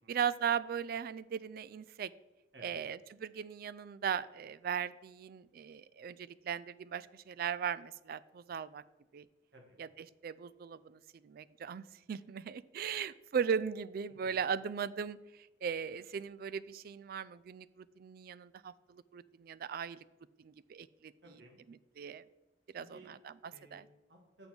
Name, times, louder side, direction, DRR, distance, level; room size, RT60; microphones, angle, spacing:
voice 1, 0.1-2.1 2.6-8.8 9.1-9.3 9.8-9.9 10.2-15.2 15.6-20.0 20.4-21.1 22.0-22.2 22.7-23.3 23.7-23.8, right 7 dB, 55° right, 18 dB, 0.3 m, -38 dB
voice 2, 21.2-21.6 22.7-23.1 23.5-24.5, right 2 dB, 75° right, 2 dB, 1.5 m, -58 dB
6.9 x 5.3 x 6.0 m, 1.1 s
head